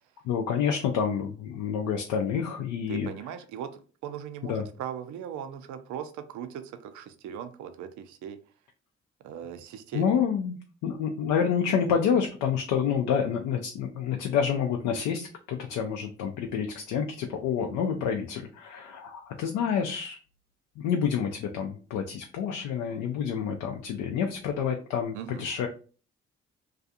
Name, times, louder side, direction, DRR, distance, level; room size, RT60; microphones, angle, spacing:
voice 1, 0.2-3.1 4.4-4.6 9.9-10.6 10.8-20.2 20.8-25.7, left 7 dB, 75° left, 3 dB, 0.5 m, -28 dB
voice 2, 2.9-8.4 9.2-10.1 25.1-25.5, right 9 dB, 65° right, 9 dB, 0.5 m, -39 dB
2.4 x 2.3 x 2.7 m, 0.38 s
hypercardioid pair, 50°, 32 cm